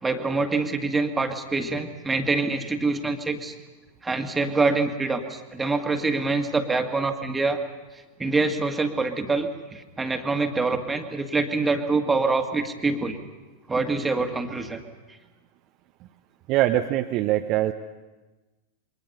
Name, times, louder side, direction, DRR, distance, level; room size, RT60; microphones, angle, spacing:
voice 1, 0.0-3.5 4.0-7.6 8.2-13.2 13.7-14.8, right 3 dB, 10° right, 6 dB, 1.9 m, -25 dB
voice 2, 16.5-17.7, right 14 dB, 40° right, 5 dB, 0.9 m, -22 dB
28.5 x 23.0 x 5.6 m, 1.2 s
figure-of-eight pair, 90°, 0 cm